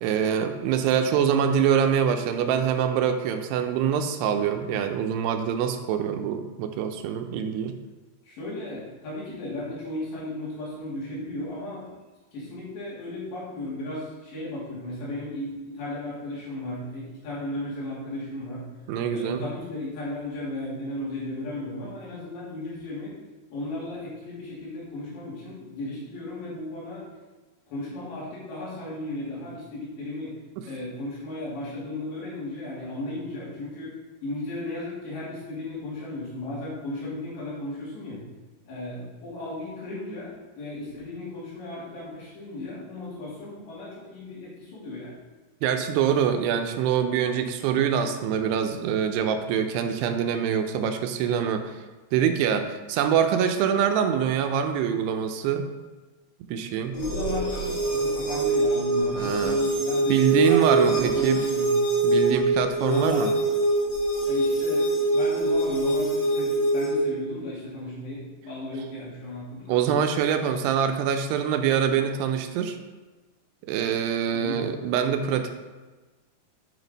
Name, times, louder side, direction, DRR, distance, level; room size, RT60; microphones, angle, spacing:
voice 1, 0.0-7.8 18.9-19.4 45.6-51.7 52.1-55.6 56.5-56.9 59.1-59.6 60.1-61.4 62.0-63.3 69.7-72.8 73.7-75.5, right 8 dB, 80° right, 7 dB, 2.6 m, -24 dB
voice 2, 8.3-11.9 12.3-18.6 19.1-23.1 23.5-27.1 27.7-30.3 30.6-33.9 34.2-38.2 38.7-45.2 56.9-61.8 62.9-63.4 64.2-69.7 74.3-74.6, left 1 dB, 90° left, -8 dB, 5.1 m, -35 dB
sound 1, 57.0-67.0, right 2 dB, 65° left, 1.5 m, -24 dB
9.1 x 5.9 x 4.0 m, 1.2 s
omnidirectional pair, 4.9 m